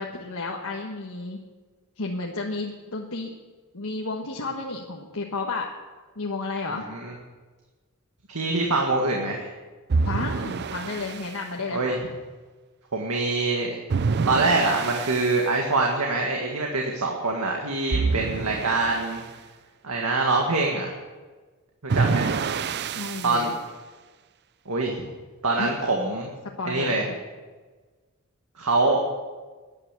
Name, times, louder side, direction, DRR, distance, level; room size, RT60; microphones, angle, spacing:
voice 1, 0.0-1.4 2.0-3.3 3.7-5.7 6.1-6.9 10.0-12.0 22.9-23.5 25.6-25.8 26.6-27.2, left 3 dB, 75° left, -1 dB, 1.4 m, -32 dB
voice 2, 6.7-7.1 8.3-9.5 11.7-12.0 12.9-13.8 14.3-19.2 19.8-20.9 21.8-22.3 23.2-23.5 24.7-25.1 25.4-26.3 26.7-27.1 28.6-29.0, right 3 dB, 90° right, 0 dB, 1.9 m, -24 dB
sound 1, 9.9-11.3 13.9-15.4 17.9-19.3 21.9-23.5, right 4 dB, 50° right, 0.4 m, -27 dB
13.5 x 10.0 x 8.3 m, 1.3 s
head